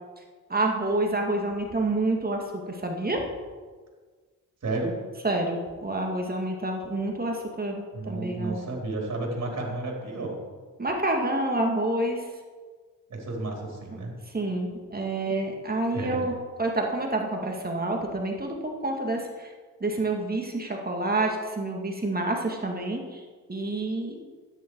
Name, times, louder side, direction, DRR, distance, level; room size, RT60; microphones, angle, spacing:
voice 1, 0.5-3.2 5.2-8.6 10.8-12.2 14.3-19.5 19.8-23.2 23.5-24.2, right 2 dB, 25° right, 1 dB, 2.2 m, -28 dB
voice 2, 4.6-5.0 7.9-10.4 13.1-14.2 15.9-16.2, right 2 dB, 45° right, -1 dB, 3.9 m, -32 dB
13.0 x 9.7 x 4.8 m, 1.5 s
cardioid pair, 75°, 36 cm